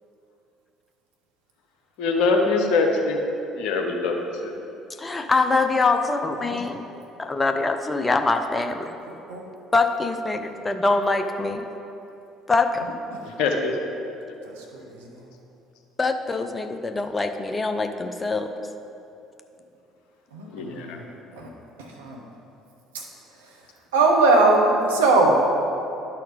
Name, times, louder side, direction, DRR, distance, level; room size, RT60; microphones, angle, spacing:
voice 1, 2.0-3.2 3.5-4.5 13.2-13.8 20.5-21.0, left 3 dB, 60° left, 2 dB, 0.7 m, -23 dB
voice 2, 5.0-6.8 7.2-8.9 9.7-11.7 12.5-12.8 16.0-18.5, left 3 dB, 20° left, 7 dB, 0.6 m, -24 dB
voice 3, 14.6-15.0 20.3-21.0 21.3-21.5 21.8-22.2 22.9-23.0 23.9-25.5, right 2 dB, 75° right, -1 dB, 0.9 m, -20 dB
11.5 x 4.2 x 4.0 m, 2.8 s
figure-of-eight pair, 55°, 0 cm